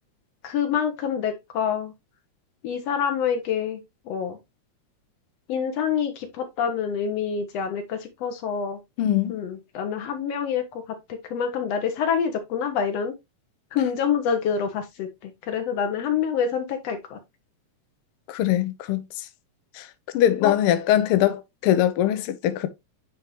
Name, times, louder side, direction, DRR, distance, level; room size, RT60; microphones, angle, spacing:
voice 1, 0.4-1.9 2.6-4.4 5.5-8.8 9.3-10.8 11.1-13.1 13.7-17.2 20.4-20.5, left 7 dB, 65° left, 2.1 m, -27 dB
voice 2, 9.0-9.4 18.3-19.0 19.7-19.9 20.1-22.7, left 11 dB, 85° left, 1.2 m, -22 dB
9.6 x 3.6 x 3.0 m
omnidirectional pair, 3.3 m